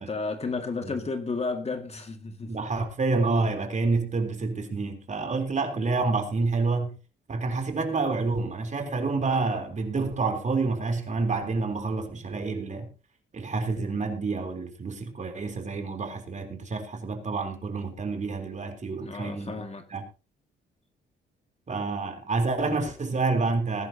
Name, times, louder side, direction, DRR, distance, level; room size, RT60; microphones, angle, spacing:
voice 1, 0.0-2.5 19.0-19.8, left 4 dB, 30° left, 2.1 m, -32 dB
voice 2, 2.5-7.0 7.3-12.9 13.3-19.6 19.9-20.0 21.7-23.9, right 3 dB, 35° right, 3.6 m, -28 dB
21.5 x 11.0 x 2.8 m
cardioid pair, 90°, 20 cm